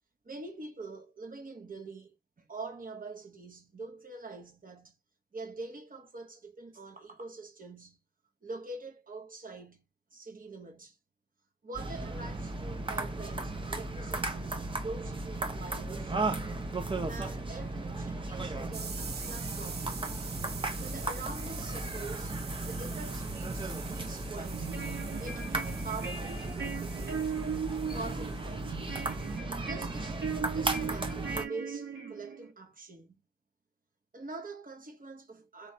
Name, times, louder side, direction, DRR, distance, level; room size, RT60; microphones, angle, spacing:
voice 1, 0.2-5.0 5.3-8.0 8.4-11.0 11.6-16.2 17.1-20.2 20.8-27.3 27.9-28.8 29.6-30.2 30.5-33.3 34.1-35.7, right 3 dB, 55° right, 1.2 m, -44 dB
sound 1, 11.7-31.4, right 2 dB, 30° right, 0.9 m, -36 dB
sound 2, 18.7-29.4, right 5 dB, 70° right, 0.7 m, -46 dB
sound 3, 24.5-32.5, right 6 dB, 90° right, 1.2 m, -38 dB
3.2 x 3.1 x 2.8 m
cardioid pair, 40°, 17 cm